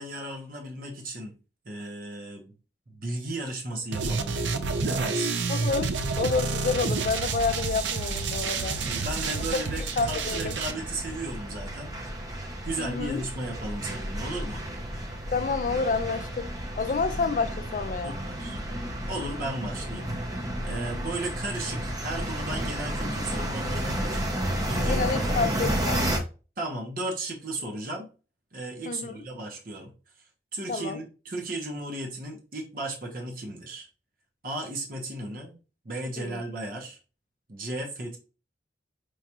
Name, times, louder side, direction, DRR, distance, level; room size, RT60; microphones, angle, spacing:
voice 1, 0.0-1.4 1.6-2.6 2.9-5.4 8.8-11.9 12.6-14.6 18.0-18.6 19.1-20.1 20.6-24.2 24.7-25.7 26.6-28.1 28.5-29.9 30.5-33.9 34.4-35.6 35.8-37.0 37.5-38.2, right 2 dB, 50° right, 0.9 m, -35 dB
sound 1, 3.9-10.7, right 4 dB, 85° right, 0.4 m, -29 dB
voice 2, 5.5-8.8 10.0-10.6 12.8-13.2 15.3-16.5 16.8-18.1 24.9-26.0 28.9-29.1 30.7-31.0 36.2-36.4, left 4 dB, 45° left, 0.3 m, -29 dB
sound 2, 6.7-26.2, right 1 dB, 20° right, 0.6 m, -32 dB
4.7 x 2.4 x 2.8 m
head